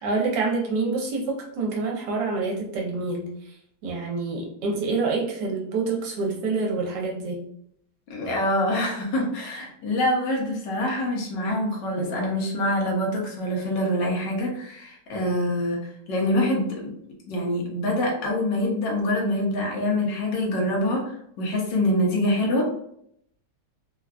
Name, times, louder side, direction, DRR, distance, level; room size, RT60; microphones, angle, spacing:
voice 1, 0.0-3.6 3.8-7.4, right 3 dB, 80° right, -1 dB, 1.4 m, -27 dB
voice 2, 8.1-16.9 17.3-22.7, left 1 dB, 75° left, -1 dB, 1.4 m, -25 dB
3.7 x 2.2 x 2.3 m, 0.71 s
omnidirectional pair, 1.9 m